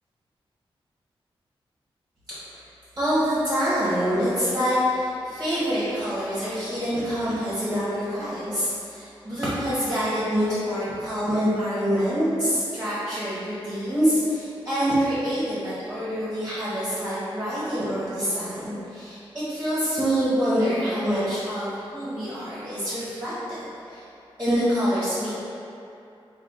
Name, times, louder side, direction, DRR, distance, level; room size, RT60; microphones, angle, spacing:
voice 1, 3.0-24.0 24.4-25.3, equal, 20° right, -11 dB, 1.0 m, -26 dB
3.7 x 2.2 x 3.7 m, 2.7 s
wide cardioid pair, 95°, 10 cm